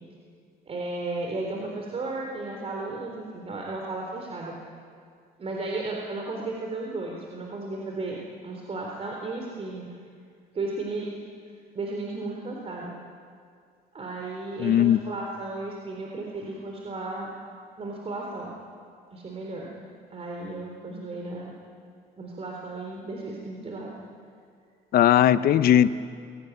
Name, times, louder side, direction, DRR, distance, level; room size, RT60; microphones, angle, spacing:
voice 1, 0.7-4.5 5.4-9.9 10.5-11.1 11.7-12.9 13.9-17.3 17.8-18.5 19.1-19.7 20.1-21.5 22.2-23.9, right 2 dB, 35° right, 0 dB, 3.9 m, -34 dB
voice 2, 14.6-15.0 24.9-25.9, left 11 dB, 65° left, 13 dB, 0.9 m, -18 dB
25.0 x 18.0 x 9.5 m, 2.2 s
cardioid pair, 110°, 17 cm